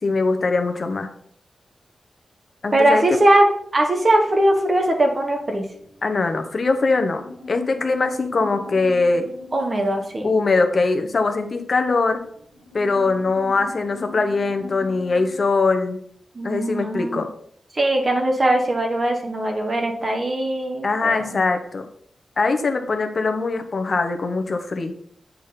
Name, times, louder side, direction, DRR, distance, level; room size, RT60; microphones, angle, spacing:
voice 1, 0.0-1.1 2.6-3.2 6.0-7.2 7.5-9.3 10.2-12.2 12.7-16.0 16.4-17.3 20.8-21.9 22.4-24.9, left 3 dB, 45° left, 6 dB, 0.9 m, -21 dB
voice 2, 2.7-5.7 9.5-10.3 16.3-17.2 17.7-21.5, right 1 dB, 30° right, 3 dB, 1.2 m, -20 dB
sound 1, 4.3-5.5 5.7-15.4, left 3 dB, 90° right, 2.4 m, -41 dB
8.1 x 3.7 x 5.6 m, 0.65 s
wide cardioid pair, 155°, 0 cm